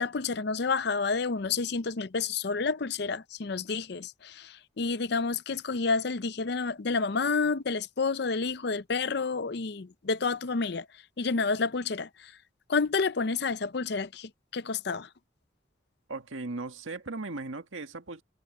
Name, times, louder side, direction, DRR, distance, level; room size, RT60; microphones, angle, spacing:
voice 1, 0.0-10.9 11.2-12.3 12.7-15.1, left 4 dB, 55° left, 0.6 m, -29 dB
voice 2, 16.1-18.2, right 3 dB, 90° right, 1.9 m, -37 dB
head